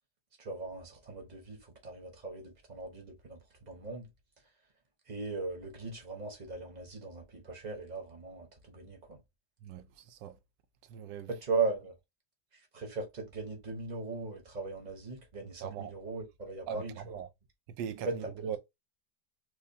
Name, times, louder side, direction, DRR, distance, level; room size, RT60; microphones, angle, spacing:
voice 1, 0.4-4.1 5.1-9.2 11.3-11.9 12.5-17.2 18.0-18.6, right 4 dB, 30° right, 0.9 m, -38 dB
voice 2, 9.6-10.3 10.9-11.3 15.6-15.9 16.7-16.8 17.1-17.3 17.8-18.6, right 8 dB, 85° right, 1.2 m, -40 dB
4.9 x 2.2 x 2.7 m
omnidirectional pair, 1.9 m